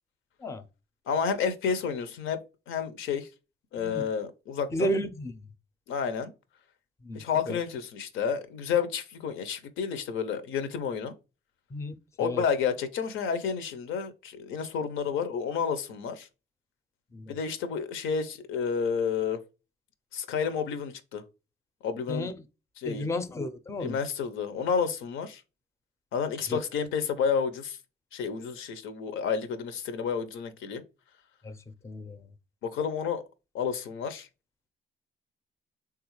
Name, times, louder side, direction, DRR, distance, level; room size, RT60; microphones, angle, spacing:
voice 1, 1.1-2.4 2.7-3.3 3.7-4.9 5.9-6.3 7.1-11.1 12.2-16.3 17.3-19.4 20.1-21.2 21.8-22.3 22.8-23.0 23.8-25.4 26.1-27.8 28.1-30.8 32.6-33.2 33.5-34.3, left 6 dB, 80° left, 0.5 m, -30 dB
voice 2, 4.7-5.3 7.0-7.2 7.5-7.6 11.7-11.9 12.2-12.4 17.1-17.4 22.1-22.3 22.9-24.0 26.5-26.6 31.4-31.6 31.8-32.3, equal, 15° left, 0.4 m, -32 dB
3.3 x 2.3 x 3.0 m
cardioid pair, 90°, 20 cm